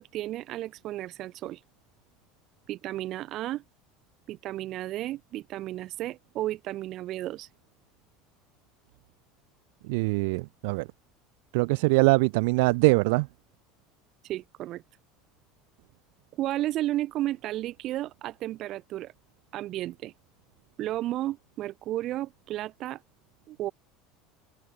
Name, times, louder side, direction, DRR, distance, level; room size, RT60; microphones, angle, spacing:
voice 1, 0.0-1.6 2.7-3.6 4.3-7.5 14.2-14.8 16.3-19.1 19.5-20.1 20.8-23.0 23.5-23.7, right 14 dB, 45° right, 4.9 m, -33 dB
voice 2, 9.8-10.9 11.5-13.3, right 27 dB, 75° right, 0.5 m, -23 dB
supercardioid pair, 140°, 0 cm